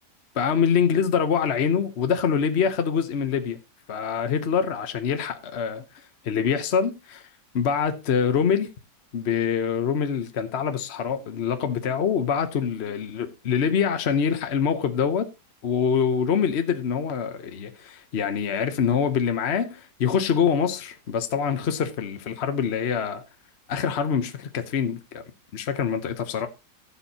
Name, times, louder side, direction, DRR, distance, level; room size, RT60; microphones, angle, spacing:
voice 1, 0.3-3.6 3.9-5.8 6.2-7.3 7.5-8.7 9.1-15.3 15.6-23.2 23.7-25.2 25.5-26.5, left 7 dB, 50° left, 1.0 m, -25 dB
15.5 x 7.2 x 2.8 m
omnidirectional pair, 1.8 m